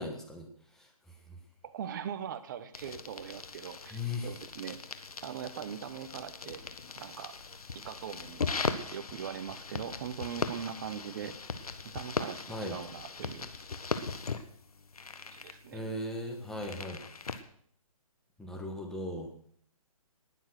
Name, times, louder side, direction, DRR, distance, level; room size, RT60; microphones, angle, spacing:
voice 1, 0.0-1.4 3.9-4.3 12.5-12.8 15.7-17.0 18.4-19.3, left 1 dB, 5° left, 1 dB, 1.6 m, -38 dB
voice 2, 1.6-4.8 5.2-6.6 7.0-7.3 7.8-11.3 11.8-13.5 15.3-15.9, right 8 dB, 30° right, 10 dB, 1.1 m, -41 dB
sound 1, 2.7-17.4, left 4 dB, 80° left, 1.6 m, -39 dB
19.5 x 7.5 x 6.4 m, 0.62 s
hypercardioid pair, 155°, 19 cm